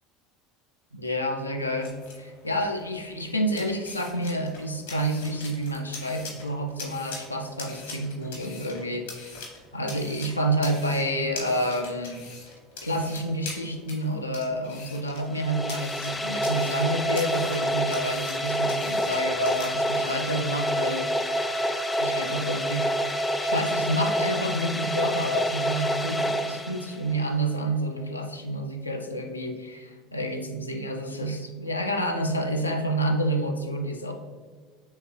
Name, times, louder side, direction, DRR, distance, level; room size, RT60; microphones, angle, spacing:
voice 1, 0.9-9.1 9.7-12.2 12.8-21.1 22.0-34.1, right 1 dB, 85° left, 2 dB, 0.4 m, -29 dB
sound 1, 1.6-20.1, left 3 dB, 70° left, 1.2 m, -43 dB
sound 2, 15.3-27.2, equal, 15° left, 0.4 m, -28 dB
4.6 x 3.5 x 3.1 m, 1.5 s
figure-of-eight pair, 70°, 0 cm